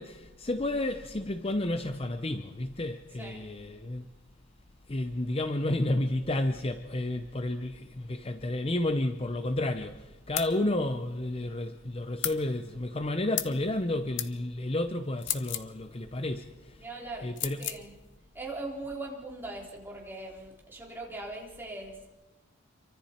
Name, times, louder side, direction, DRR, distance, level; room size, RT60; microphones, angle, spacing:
voice 1, 0.0-4.0 4.9-17.7, left 1 dB, 25° left, 0.7 m, -31 dB
sound 1, 10.4-10.5 12.2-12.4 13.4-13.6 14.2-14.3 15.2-15.7 17.4-17.8, left 12 dB, 55° left, 0.9 m, -33 dB
voice 2, 16.7-17.9 18.3-22.1, right 2 dB, 10° right, 3.4 m, -40 dB
27.0 x 24.0 x 4.4 m
head